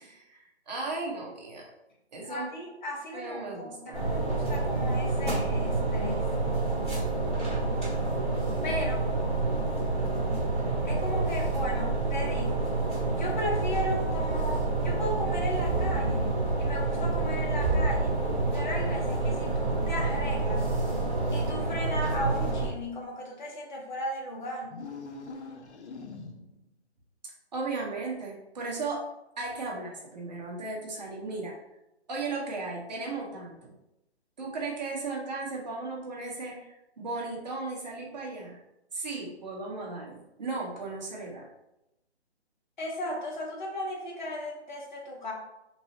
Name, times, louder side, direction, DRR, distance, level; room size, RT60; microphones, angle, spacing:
voice 1, 0.0-1.6 2.1-2.5 3.1-4.0 27.2-29.0 29.4-31.5 32.1-33.7 34.4-38.6 38.9-41.5, right 3 dB, 40° right, -2 dB, 0.8 m, -36 dB
voice 2, 2.2-6.3 8.6-9.0 10.8-12.7 13.1-16.3 16.5-18.2 18.5-20.8 21.3-24.8 42.8-45.3, equal, 45° left, -1 dB, 0.8 m, -35 dB
sound 1, 3.9-22.7, right 3 dB, ahead, 1.2 m, -28 dB
sound 2, 24.6-26.7, left 4 dB, 80° left, 0.6 m, -42 dB
3.0 x 2.6 x 2.7 m, 0.90 s
hypercardioid pair, 160°, 34 cm